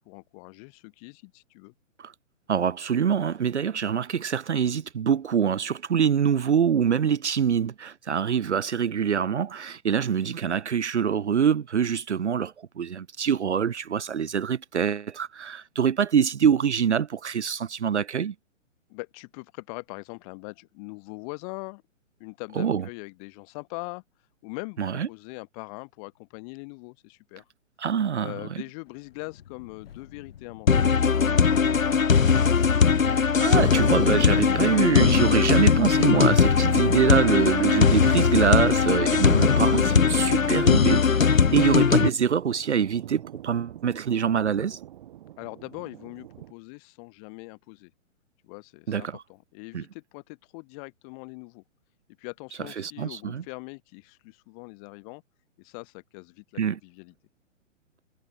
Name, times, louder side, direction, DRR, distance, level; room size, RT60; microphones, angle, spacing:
voice 1, 0.0-1.7 18.9-21.8 22.2-24.0 24.4-27.4 28.2-32.3 45.4-47.9 48.4-51.6 52.2-55.2 55.6-57.1, left 34 dB, 30° left, 5.2 m, -42 dB
voice 2, 2.5-18.3 22.6-22.8 24.8-25.1 27.8-28.3 33.0-44.8 48.9-49.2 49.7-49.8 52.8-53.4 56.6-56.8, right 7 dB, 60° right, 0.9 m, -25 dB
sound 1, 28.8-37.9, left 9 dB, 50° left, 7.4 m, -50 dB
sound 2, 30.7-42.1, left 6 dB, 80° left, 0.8 m, -20 dB
Thunder, 33.4-46.5, right 12 dB, 40° right, 1.9 m, -47 dB
figure-of-eight pair, 125°, 39 cm